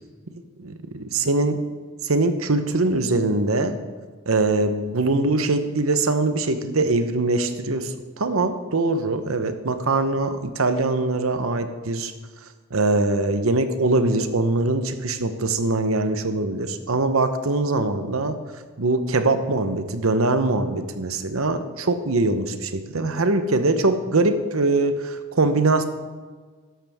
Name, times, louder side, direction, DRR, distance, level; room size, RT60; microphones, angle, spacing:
voice 1, 0.6-1.5 2.0-3.8 4.3-12.1 12.7-18.4 18.8-25.8, right 2 dB, 80° right, 9 dB, 0.9 m, -22 dB
12.5 x 11.5 x 3.6 m, 1.5 s
head